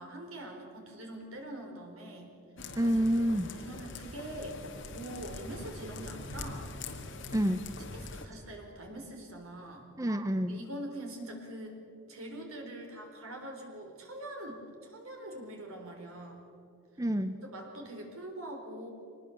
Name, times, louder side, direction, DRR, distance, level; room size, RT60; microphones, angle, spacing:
voice 1, 0.0-2.3 3.5-6.7 7.9-9.9 10.4-11.8 12.1-16.5 17.4-18.9, right 1 dB, 80° right, 2 dB, 4.3 m, -43 dB
sound 1, 2.6-8.3, left 2 dB, 60° left, 2.0 m, -43 dB
voice 2, 2.8-3.5 7.3-7.6 10.0-10.6 17.0-17.4, equal, 15° right, 9 dB, 0.6 m, -28 dB
23.5 x 20.0 x 7.2 m, 2.6 s
head